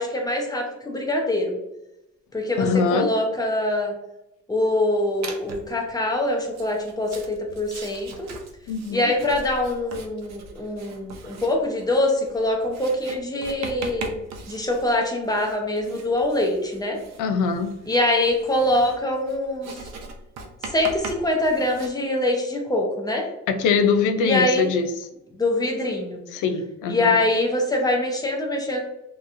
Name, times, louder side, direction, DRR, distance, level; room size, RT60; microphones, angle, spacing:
voice 1, 0.0-1.6 2.3-3.9 4.5-8.3 8.9-14.1 14.5-17.0 17.9-19.8 20.6-23.3 24.2-24.7 25.4-26.2 26.9-28.8, left 1 dB, 15° left, 1 dB, 0.7 m, -24 dB
voice 2, 2.6-3.1 8.7-9.0 17.2-17.7 23.5-24.9 26.3-27.1, left 5 dB, 85° left, 7 dB, 0.5 m, -22 dB
Writing, 5.2-5.8 6.5-21.9, right 4 dB, 60° right, 0.6 m, -40 dB
2.9 x 2.2 x 2.5 m, 0.89 s
cardioid pair, 90°, 30 cm